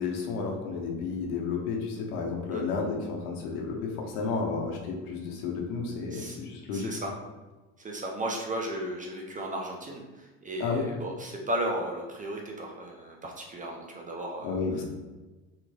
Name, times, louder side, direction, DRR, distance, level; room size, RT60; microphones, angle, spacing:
voice 1, 0.0-6.9 10.6-10.9 14.4-14.8, left 4 dB, 75° left, 0 dB, 1.0 m, -32 dB
voice 2, 6.7-7.1 7.8-14.5, right 1 dB, 20° right, 0 dB, 0.4 m, -35 dB
3.7 x 3.1 x 2.2 m, 1.2 s
supercardioid pair, 90°, 44 cm